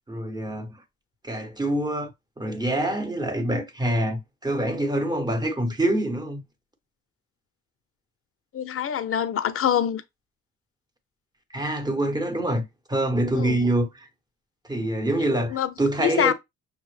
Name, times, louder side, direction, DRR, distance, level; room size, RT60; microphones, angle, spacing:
voice 1, 0.1-0.8 1.2-2.1 2.4-6.4 11.5-12.6 12.9-14.1 14.7-16.3, right 1 dB, 15° right, 1.0 m, -25 dB
voice 2, 8.5-10.0 13.3-13.6 15.5-15.7 16.0-16.3, left 9 dB, 45° left, 0.6 m, -25 dB
6.1 x 2.1 x 3.2 m
cardioid pair, 90°, 30 cm